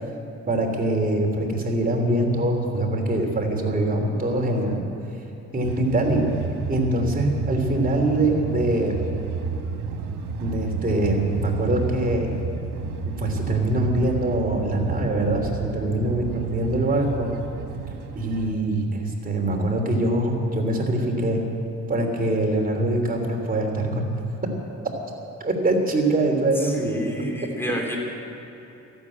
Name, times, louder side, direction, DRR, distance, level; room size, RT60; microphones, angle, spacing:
voice 1, 0.5-4.8 5.5-6.2 6.7-9.0 10.4-12.3 13.1-17.3 18.1-21.4 21.9-24.1 25.4-27.0, right 1 dB, 30° right, 2 dB, 3.0 m, -23 dB
sound 1, 5.6-18.5, right 5 dB, 90° right, 1.4 m, -32 dB
voice 2, 26.6-28.0, equal, 5° left, 0 dB, 3.5 m, -31 dB
13.5 x 12.5 x 8.6 m, 3.0 s
cardioid pair, 90°, 30 cm